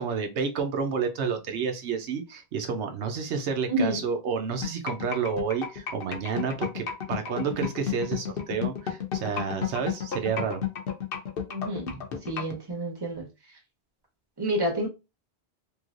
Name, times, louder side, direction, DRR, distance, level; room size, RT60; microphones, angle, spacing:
voice 1, 0.0-10.6, right 6 dB, 85° right, 1.0 m, -30 dB
sound 1, 4.6-12.6, left 8 dB, 60° left, 0.8 m, -31 dB
voice 2, 11.5-11.9 12.3-13.2 14.4-14.9, right 1 dB, 25° right, 1.0 m, -28 dB
3.2 x 2.8 x 2.5 m
omnidirectional pair, 1.1 m